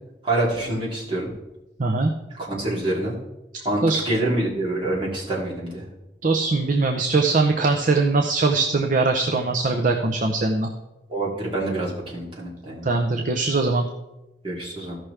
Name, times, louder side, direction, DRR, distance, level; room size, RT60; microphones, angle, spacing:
voice 1, 0.2-1.3 2.5-3.1 3.6-5.8 11.1-12.9 14.4-15.0, right 1 dB, 30° right, -6 dB, 2.7 m, -26 dB
voice 2, 1.8-2.1 3.5-4.0 6.2-10.7 12.8-13.9, right 3 dB, 45° right, 4 dB, 0.6 m, -21 dB
14.5 x 6.0 x 3.3 m, 0.98 s
head